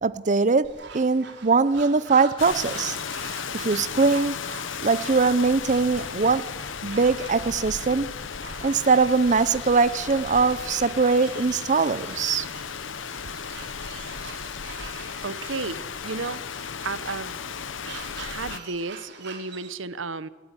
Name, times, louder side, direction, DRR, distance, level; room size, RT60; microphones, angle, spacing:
voice 1, 0.0-3.0 3.5-4.4 4.8-6.4 6.8-8.1 8.6-12.5, right 4 dB, 40° right, 15 dB, 0.6 m, -22 dB
sound 1, 0.6-19.7, right 5 dB, 60° right, 4.2 m, -45 dB
Rain, 2.4-18.6, left 6 dB, 80° left, 0.9 m, -35 dB
voice 2, 15.2-15.8 16.0-16.4 16.8-17.4 18.2-20.3, right 4 dB, 90° right, 16 dB, 1.0 m, -32 dB
28.5 x 13.5 x 9.8 m, 1.4 s
head